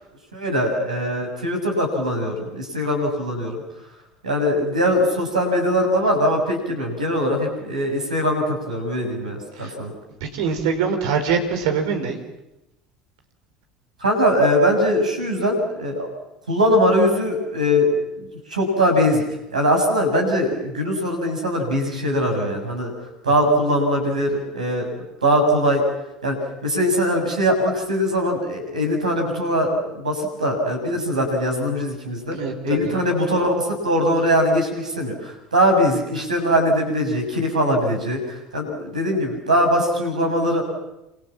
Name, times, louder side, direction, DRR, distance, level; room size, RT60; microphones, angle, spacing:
voice 1, 0.3-3.6 4.2-9.9 14.0-16.1 16.5-19.2 19.5-22.9 23.2-24.9 25.2-25.8 26.2-26.4 26.6-32.4 32.6-40.6, equal, 80° right, 2 dB, 7.2 m, -21 dB
voice 2, 10.2-12.2 23.4-23.5 32.3-33.0, right 6 dB, 60° right, 5 dB, 4.9 m, -24 dB
28.0 x 27.5 x 7.5 m, 0.93 s
figure-of-eight pair, 65°, 4 cm